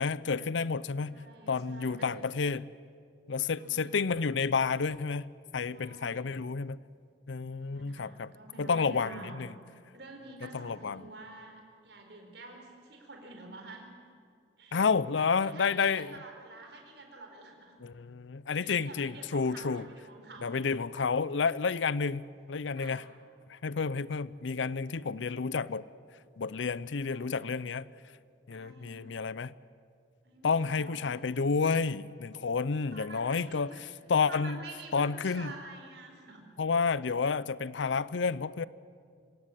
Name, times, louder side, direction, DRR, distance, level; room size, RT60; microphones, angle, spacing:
voice 1, 0.0-2.6 3.3-6.8 7.3-8.3 8.6-9.5 10.4-11.1 14.7-16.1 17.8-19.9 20.4-23.0 23.5-25.8 26.4-27.9 28.5-29.5 30.4-34.6 34.9-35.5 36.6-38.6, left 5 dB, 85° left, 0.6 m, -30 dB
voice 2, 1.0-2.2 3.5-4.0 5.7-6.4 7.6-9.4 9.9-13.9 14.6-14.8 15.2-17.8 18.5-20.5 22.8-23.0 27.1-27.6 28.5-29.1 30.2-31.1 32.9-33.9 34.3-36.5, right 3 dB, 65° right, 4.5 m, -48 dB
25.5 x 17.0 x 9.7 m
head